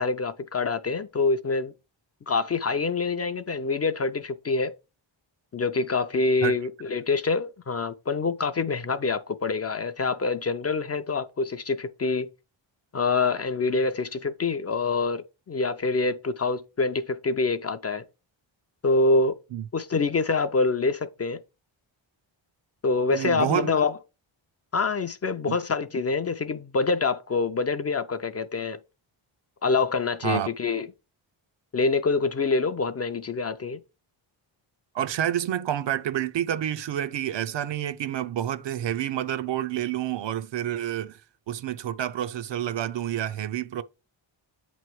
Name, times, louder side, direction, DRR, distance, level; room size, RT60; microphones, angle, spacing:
voice 1, 0.0-1.7 2.3-4.7 5.5-12.3 12.9-18.0 18.8-19.4 19.7-21.4 22.8-23.9 24.7-28.8 29.6-30.9 31.7-33.8, left 3 dB, 35° left, 0.4 m, -26 dB
voice 2, 23.1-23.7 25.5-25.6 30.2-30.5 34.9-41.2 41.5-43.8, right 11 dB, 65° right, 0.5 m, -28 dB
8.2 x 3.1 x 4.6 m
wide cardioid pair, 120°, 48 cm